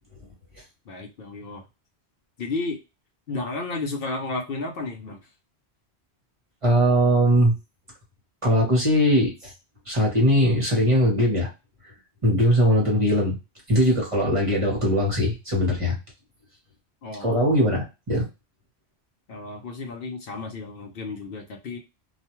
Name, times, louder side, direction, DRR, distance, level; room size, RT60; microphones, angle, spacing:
voice 1, 0.9-1.7 2.4-2.8 3.3-5.3 17.0-17.6 19.3-21.8, left 3 dB, 65° left, 3 dB, 0.8 m, -33 dB
voice 2, 6.6-7.5 8.4-9.5 9.9-11.5 12.2-13.4 13.7-16.0 17.2-18.3, equal, 30° right, -2 dB, 0.9 m, -20 dB
2.4 x 2.2 x 2.9 m, 0.26 s
omnidirectional pair, 1.1 m